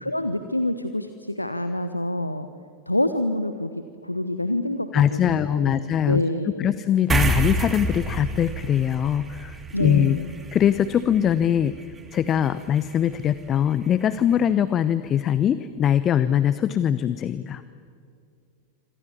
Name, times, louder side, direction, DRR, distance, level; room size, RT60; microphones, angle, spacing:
voice 1, 0.0-2.5 2.9-3.7 4.0-6.7 9.7-10.3, left 1 dB, 85° left, 10 dB, 1.0 m, -27 dB
voice 2, 4.9-6.2 6.6-10.2 10.5-11.8 12.1-17.6, left 9 dB, 30° left, 15 dB, 0.8 m, -22 dB
sound 1, 7.1-13.9, right 3 dB, 15° right, 2.7 m, -30 dB
27.0 x 26.5 x 7.2 m, 2.3 s
figure-of-eight pair, 90°, 0 cm